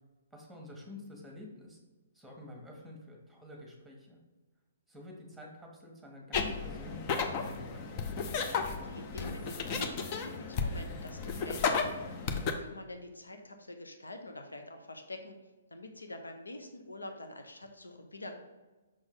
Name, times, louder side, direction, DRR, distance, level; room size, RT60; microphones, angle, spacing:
voice 1, 0.3-1.8 2.1-4.2 4.9-8.1, left 2 dB, ahead, 0 dB, 1.5 m, -48 dB
sound 1, 6.3-12.5, left 5 dB, 35° left, 0.7 m, -34 dB
voice 2, 8.6-15.4 15.7-18.3, left 1 dB, 80° left, 5 dB, 0.8 m, -46 dB
6.2 x 4.4 x 3.8 m, 1.2 s
figure-of-eight pair, 125°, 0 cm